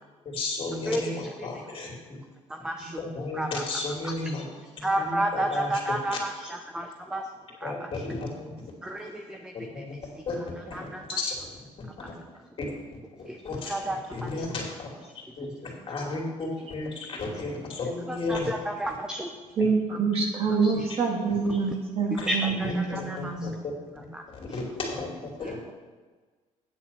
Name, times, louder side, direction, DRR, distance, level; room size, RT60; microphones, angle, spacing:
voice 1, 0.2-1.9 3.0-4.4 4.8-5.7 7.6-8.5 9.5-10.0 10.3-11.4 12.0-12.1 12.6-12.7 13.4-13.7 14.1-14.9 15.4-18.5 22.2-22.3 22.9-23.7 24.3-25.7, left 3 dB, 45° left, -1 dB, 2.9 m, -33 dB
voice 2, 0.9-1.5 2.5-3.6 4.0-4.3 4.6-7.3 7.6-8.0 8.8-9.8 10.2-11.3 12.0-12.1 13.2-14.4 15.4-15.5 18.1-19.3 20.6-20.9 21.5-21.8 22.1-23.5 24.0-24.2 24.5-24.6 25.4-25.7, right 1 dB, 5° right, 4 dB, 0.7 m, -33 dB
voice 3, 19.6-23.5, right 4 dB, 50° right, 0 dB, 2.2 m, -26 dB
9.1 x 7.3 x 5.8 m, 1.4 s
cardioid pair, 115°, 13 cm